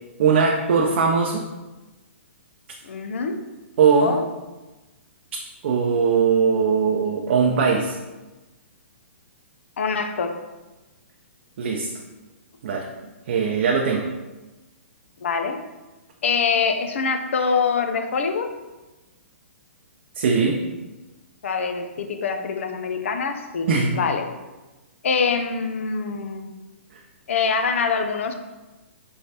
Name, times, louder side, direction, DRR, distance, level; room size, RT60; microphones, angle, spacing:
voice 1, 0.2-1.4 3.8-4.2 5.6-8.0 11.6-11.9 12.6-12.9 13.3-14.1 20.2-20.6 23.7-23.9, right 5 dB, 60° right, 1 dB, 0.5 m, -20 dB
voice 2, 2.8-3.4 4.0-4.2 9.8-10.3 15.2-15.6 16.2-18.5 21.4-23.7 23.9-24.2 25.0-26.5 27.3-28.3, left 5 dB, 75° left, 6 dB, 0.5 m, -24 dB
4.5 x 3.2 x 2.8 m, 1.1 s
hypercardioid pair, 135°, 7 cm